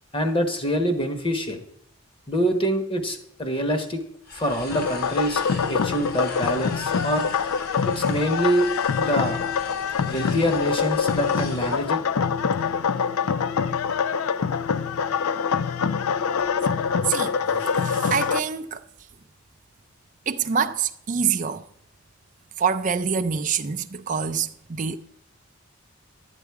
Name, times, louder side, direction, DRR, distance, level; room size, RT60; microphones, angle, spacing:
voice 1, 0.1-1.6 2.3-4.0 4.3-7.3 7.9-8.7 8.9-9.4 10.1-12.0, equal, 25° left, 1.1 m, -25 dB
sound 1, 4.2-11.9, left 3 dB, 45° left, 1.5 m, -42 dB
sound 2, 4.7-18.4, left 6 dB, 80° left, 0.4 m, -25 dB
voice 2, 17.6-18.8 20.3-21.6 22.6-25.0, right 6 dB, 35° right, 0.4 m, -26 dB
12.0 x 8.1 x 4.7 m
head